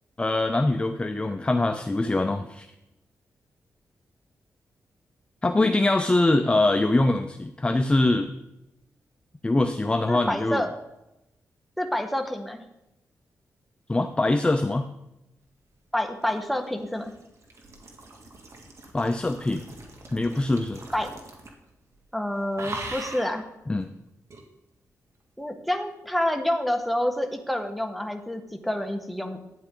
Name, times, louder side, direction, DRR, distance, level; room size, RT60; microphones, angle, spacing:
voice 1, 0.2-2.7 5.4-8.3 9.4-10.6 13.9-14.9 18.9-19.6 20.1-20.8 23.7-23.9, left 2 dB, 20° left, 8 dB, 0.5 m, -23 dB
voice 2, 10.1-10.7 11.8-12.6 15.9-17.1 20.9-21.1 22.1-23.5 25.4-29.4, left 1 dB, ahead, 4 dB, 1.4 m, -28 dB
sound 1, 15.9-21.7 21.9-22.2 22.6-23.4 24.3-24.4, right 2 dB, 55° right, 1.9 m, -41 dB
12.0 x 9.6 x 3.9 m, 0.90 s
cardioid pair, 85°, 6 cm